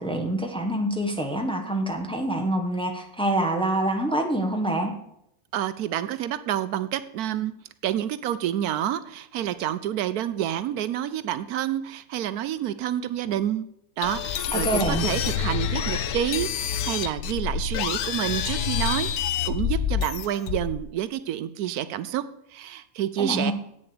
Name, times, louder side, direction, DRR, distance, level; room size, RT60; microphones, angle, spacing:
voice 1, 0.0-4.9 14.5-15.0 23.2-23.5, right 1 dB, 5° left, 3 dB, 1.2 m, -26 dB
voice 2, 5.5-7.5 7.8-13.7 14.0-22.2 22.5-23.5, right 11 dB, 80° right, 13 dB, 1.1 m, -28 dB
sound 1, 14.0-20.8, left 8 dB, 80° left, 1.2 m, -27 dB
8.6 x 7.0 x 6.7 m, 0.77 s
omnidirectional pair, 1.6 m